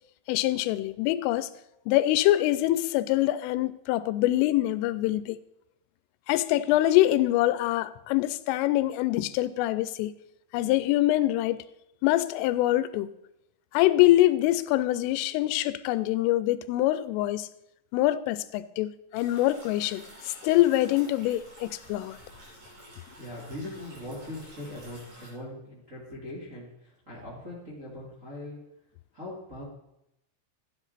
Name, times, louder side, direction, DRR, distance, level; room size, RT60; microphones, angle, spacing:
voice 1, 0.3-1.5 1.9-5.4 6.3-10.1 10.5-11.6 12.0-13.1 13.7-17.5 17.9-22.2, left 15 dB, 90° left, 3.1 m, -24 dB
sound 1, 19.1-25.3, equal, 50° right, 4.9 m, -50 dB
voice 2, 22.9-28.6 29.1-29.6, left 1 dB, 25° right, 1.7 m, -41 dB
13.0 x 10.0 x 4.1 m
omnidirectional pair, 5.6 m